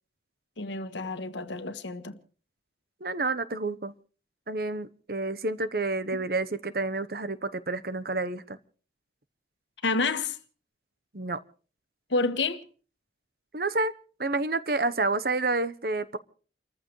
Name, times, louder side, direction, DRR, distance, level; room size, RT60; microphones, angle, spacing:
voice 1, 0.6-2.1 9.8-10.4 12.1-12.6, left 3 dB, 90° left, 1.6 m, -29 dB
voice 2, 3.0-3.9 4.5-8.6 11.1-11.4 13.5-13.9 14.2-16.2, right 3 dB, 55° right, 1.0 m, -29 dB
30.0 x 14.5 x 3.2 m
head